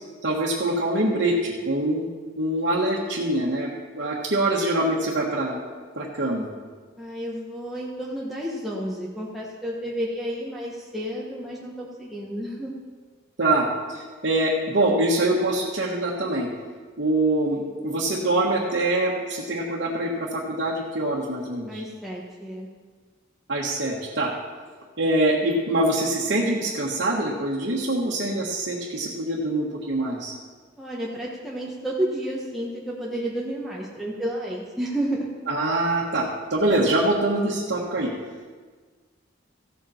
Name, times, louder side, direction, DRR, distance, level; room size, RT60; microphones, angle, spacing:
voice 1, 0.2-2.1 2.4-5.6 5.9-6.5 13.4-16.5 17.0-21.8 23.5-24.3 25.0-30.3 35.5-38.1, right 1 dB, 60° right, -5 dB, 1.5 m, -24 dB
voice 2, 7.0-12.7 21.7-22.7 30.8-35.3, right 1 dB, ahead, -5 dB, 1.2 m, -31 dB
15.0 x 8.2 x 4.3 m, 1.5 s
head